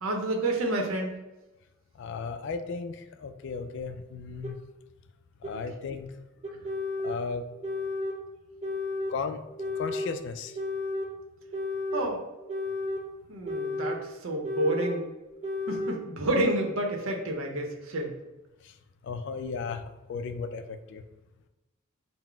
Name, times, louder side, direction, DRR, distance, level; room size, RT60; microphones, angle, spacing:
voice 1, 0.0-1.1 5.5-5.6 11.9-12.2 13.3-15.1 15.7-18.1, right 1 dB, 80° right, 2 dB, 0.7 m, -29 dB
voice 2, 2.0-4.6 5.4-6.1 7.0-7.4 9.1-9.4 9.8-10.6 18.6-18.7 19.0-19.8 20.1-21.0, left 5 dB, 55° left, 8 dB, 0.3 m, -35 dB
sound 1, 4.4-4.5 5.4-5.5 6.4-7.2 7.6-8.2 8.6-9.2 9.6-10.1 10.6-11.1 11.5-12.1 12.5-13.1 13.5-14.0 14.4-15.0 15.4-16.0, left 2 dB, 30° right, 0.4 m, -32 dB
4.0 x 2.0 x 4.3 m, 1.0 s
head